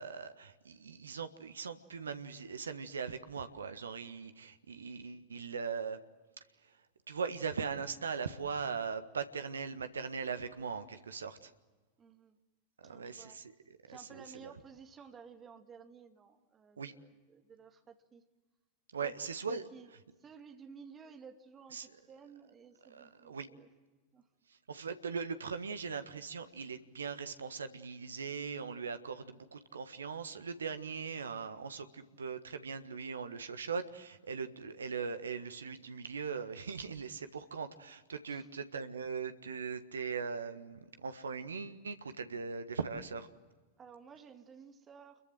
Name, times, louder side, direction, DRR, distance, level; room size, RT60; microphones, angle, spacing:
voice 1, 0.0-6.0 6.6-6.7 7.1-11.5 12.8-13.5 13.9-14.5 16.8-16.9 18.9-19.7 21.7-21.9 22.9-23.5 24.7-43.3, right 5 dB, 70° right, 10 dB, 1.5 m, -40 dB
voice 2, 12.0-12.4 12.8-13.4 13.9-18.2 19.0-19.1 19.5-19.9 20.2-23.7 24.1-24.3 38.3-38.5 43.8-45.2, right 6 dB, 20° right, 6 dB, 2.3 m, -54 dB
29.0 x 22.5 x 7.7 m, 1.3 s
figure-of-eight pair, 90°, 0 cm